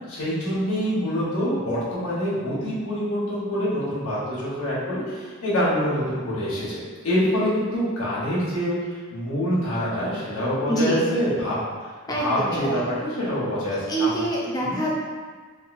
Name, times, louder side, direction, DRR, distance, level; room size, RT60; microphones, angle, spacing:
voice 1, 0.1-6.8 7.0-8.8 9.1-11.6 12.2-14.1 14.7-14.8, equal, 85° left, -9 dB, 1.3 m, -25 dB
voice 2, 10.7-11.0 12.1-12.9 13.9-14.9, right 1 dB, 15° left, -4 dB, 0.5 m, -25 dB
3.6 x 2.7 x 2.6 m, 1.5 s
head